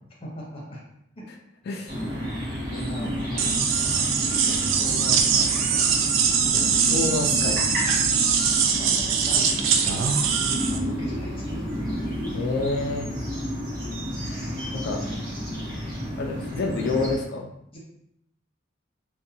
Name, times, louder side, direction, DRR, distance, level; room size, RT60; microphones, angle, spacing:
voice 1, 0.2-0.8 1.2-1.3 2.0-2.2 2.7-6.0 8.7-10.3 10.7-11.7 15.0-15.1 17.7-17.8, equal, 30° left, -4 dB, 0.8 m, -40 dB
voice 2, 1.7-2.0 6.5-7.6 12.3-13.1 14.7-15.0 16.2-17.5, left 3 dB, 55° left, 2 dB, 0.3 m, -28 dB
sound 1, 1.9-17.1, equal, 50° right, 1.0 m, -31 dB
sound 2, 3.4-10.8, right 6 dB, 80° right, 0.3 m, -22 dB
2.7 x 2.2 x 2.6 m, 0.76 s
head